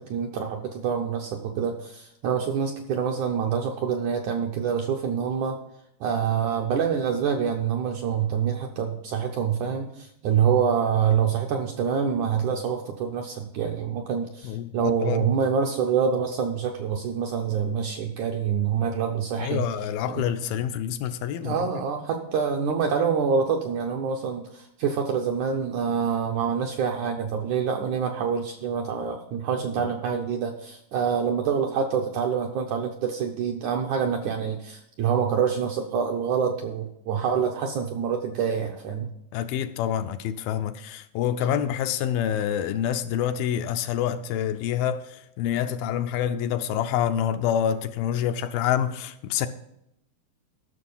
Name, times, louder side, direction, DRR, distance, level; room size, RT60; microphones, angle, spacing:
voice 1, 0.0-5.6 6.0-19.7 20.1-20.2 21.4-39.1, right 7 dB, 75° right, 1.8 m, -26 dB
voice 2, 14.4-15.3 19.4-21.6 29.8-29.9 39.3-49.5, left 9 dB, 80° left, 2.3 m, -27 dB
13.5 x 6.3 x 5.4 m
omnidirectional pair, 4.4 m